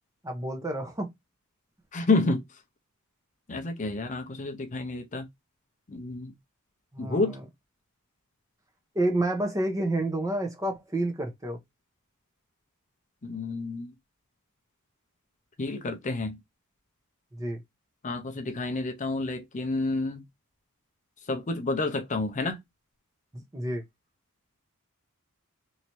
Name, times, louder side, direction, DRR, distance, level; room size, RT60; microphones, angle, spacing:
voice 1, 0.2-1.1 6.9-7.4 8.9-11.6 17.3-17.6 23.3-23.8, right 1 dB, 15° right, 0.8 m, -29 dB
voice 2, 1.9-2.4 3.5-5.3 5.9-6.3 7.0-7.4 13.2-13.9 15.6-16.4 18.0-20.2 21.3-22.6, left 2 dB, 35° left, 0.5 m, -29 dB
3.1 x 2.7 x 3.0 m
head